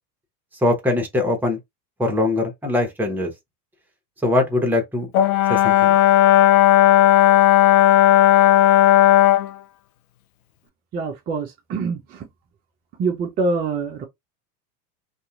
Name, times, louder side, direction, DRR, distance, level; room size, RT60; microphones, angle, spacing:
voice 1, 0.6-1.6 2.0-3.3 4.2-5.1 5.5-5.9, left 2 dB, 5° right, 0.9 m, -21 dB
Brass instrument, 5.1-9.5, left 13 dB, 60° left, 0.5 m, -14 dB
voice 2, 10.9-12.3 13.0-14.0, right 4 dB, 20° right, 0.4 m, -25 dB
2.7 x 2.4 x 2.3 m
hypercardioid pair, 90°, 50 cm